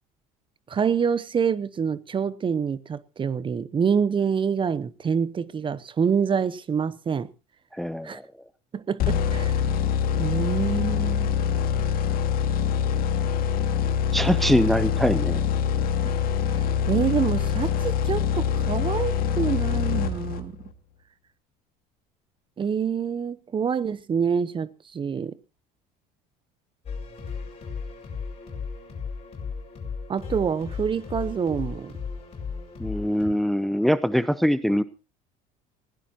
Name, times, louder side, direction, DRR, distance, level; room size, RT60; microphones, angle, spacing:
voice 1, 0.7-7.3 8.0-8.2 8.7-9.6 10.2-11.3 16.5-20.6 22.6-25.3 30.1-31.9, right 6 dB, 25° right, 0.9 m, -26 dB
voice 2, 7.7-8.3 14.1-15.4 32.8-34.8, equal, ahead, 0.7 m, -23 dB
sound 1, 9.0-20.7, left 7 dB, 55° left, 2.1 m, -24 dB
sound 2, 26.9-33.3, left 5 dB, 30° left, 7.4 m, -35 dB
20.0 x 16.5 x 2.9 m
supercardioid pair, 115°, 19 cm